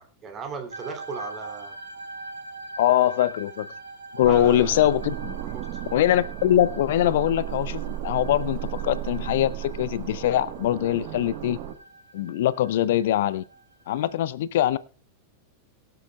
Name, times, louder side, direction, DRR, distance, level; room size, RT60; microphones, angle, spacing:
voice 1, 0.0-1.7 4.2-4.8 5.4-5.8, right 5 dB, 25° right, 4 dB, 2.8 m, -37 dB
sound 1, 0.7-14.2, right 2 dB, 80° right, 3.7 m, -43 dB
voice 2, 2.8-3.7 4.1-5.4 5.9-11.6 12.1-13.4 13.9-14.8, left 12 dB, 55° left, 18 dB, 0.5 m, -22 dB
sound 2, 4.2-11.7, right 12 dB, 45° right, 1.4 m, -34 dB
23.0 x 7.7 x 2.3 m, 0.38 s
figure-of-eight pair, 90°, 0 cm